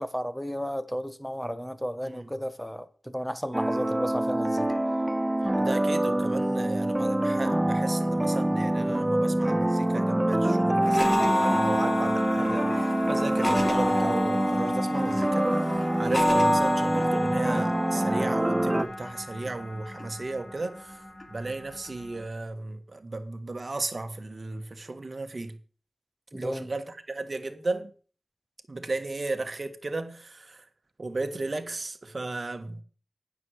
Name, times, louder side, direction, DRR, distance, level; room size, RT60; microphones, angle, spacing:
voice 1, 0.0-4.7 26.3-26.7, equal, 5° left, 1.1 m, -33 dB
sound 1, 3.5-18.9, right 1 dB, 15° right, 0.7 m, -25 dB
voice 2, 5.6-25.6 26.3-27.9 28.7-30.6 31.0-32.8, right 2 dB, 40° right, 1.6 m, -34 dB
sound 2, 10.8-22.2, left 1 dB, 35° left, 2.5 m, -30 dB
9.6 x 6.3 x 7.9 m
wide cardioid pair, 80°, 0 cm